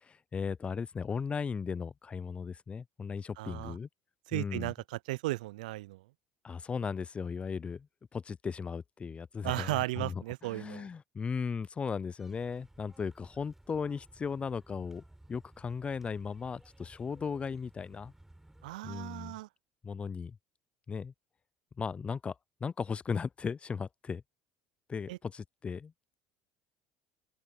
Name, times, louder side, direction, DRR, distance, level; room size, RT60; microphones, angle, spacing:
voice 1, 0.0-3.9 4.3-4.7 6.4-7.9 8.1-15.0 15.3-18.1 18.8-19.4 19.8-20.4 20.9-21.1 21.8-22.3 22.6-24.2 24.9-25.9, left 5 dB, 25° left, 0.4 m, -37 dB
voice 2, 3.4-3.8 4.3-6.0 9.4-10.9 18.6-19.5 25.1-25.2, right 19 dB, 85° right, 0.4 m, -35 dB
sound 1, 12.2-18.8, right 1 dB, 5° right, 4.4 m, -58 dB
open air
hypercardioid pair, 75°, 4 cm